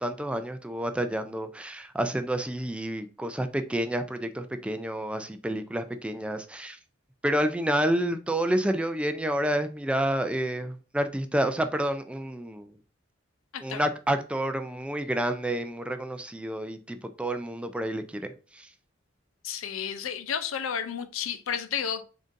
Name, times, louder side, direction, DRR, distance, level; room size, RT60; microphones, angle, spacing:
voice 1, 0.0-6.8 7.2-12.7 13.6-18.2 18.6-18.7, right 1 dB, 5° right, 0.3 m, -29 dB
voice 2, 19.4-22.0, left 8 dB, 85° left, 0.5 m, -32 dB
3.8 x 3.7 x 2.6 m
head